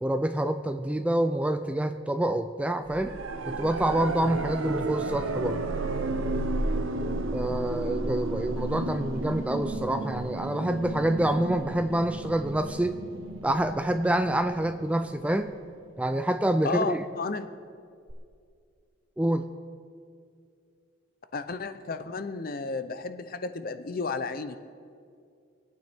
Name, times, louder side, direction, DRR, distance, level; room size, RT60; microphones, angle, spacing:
voice 1, 0.0-3.2 3.5-5.6 7.3-13.0 13.4-15.5 16.0-17.0 19.2-19.5, right 1 dB, 5° right, 9 dB, 0.3 m, -27 dB
sound 1, 2.9-15.7 18.1-18.2, right 2 dB, 75° right, 0.7 m, -33 dB
voice 2, 16.6-17.5 21.3-24.6, left 4 dB, 45° left, 10 dB, 0.6 m, -32 dB
24.5 x 9.2 x 3.5 m, 2.3 s
head